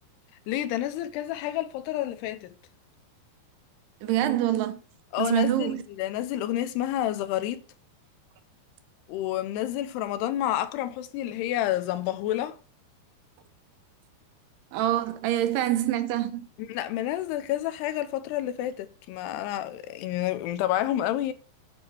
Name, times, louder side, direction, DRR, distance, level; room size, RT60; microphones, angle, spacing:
voice 1, 0.5-2.5 5.1-7.6 9.1-12.6 16.6-21.3, left 13 dB, 85° left, 2.9 m, -29 dB
voice 2, 4.0-4.8 5.2-5.8 14.7-16.5, right 13 dB, 80° right, 2.9 m, -25 dB
9.9 x 4.9 x 6.9 m
omnidirectional pair, 4.7 m